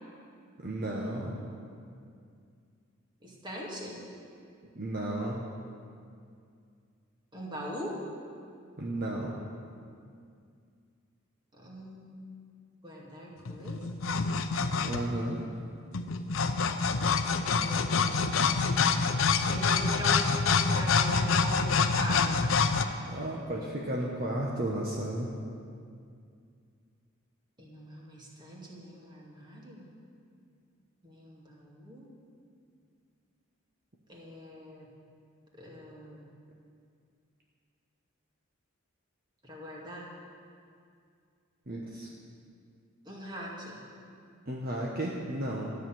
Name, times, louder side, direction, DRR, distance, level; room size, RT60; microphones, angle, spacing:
voice 1, 0.6-1.4 4.7-5.5 8.8-9.4 14.8-15.4 17.6-17.7 23.0-25.3 41.7-42.1 44.5-45.7, right 1 dB, 45° right, -2 dB, 1.2 m, -33 dB
voice 2, 3.2-4.0 7.3-8.0 11.5-12.2 12.8-14.3 17.4-18.6 19.5-22.5 27.6-29.9 31.0-32.1 34.1-34.9 35.6-36.3 39.4-40.1 43.1-43.8, equal, 20° right, -3 dB, 2.2 m, -41 dB
sound 1, 13.5-15.2 15.9-22.9, left 5 dB, 70° left, 0.6 m, -26 dB
13.0 x 6.7 x 9.3 m, 2.3 s
head